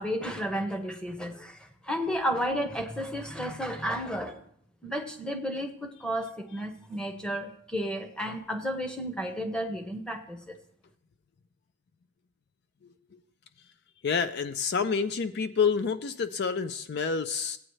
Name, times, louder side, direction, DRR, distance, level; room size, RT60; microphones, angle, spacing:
voice 1, 0.0-4.4 4.8-10.6, equal, 5° left, 6 dB, 0.8 m, -32 dB
voice 2, 14.0-17.6, left 5 dB, 50° left, 11 dB, 0.4 m, -28 dB
16.0 x 8.8 x 3.1 m, 0.67 s
head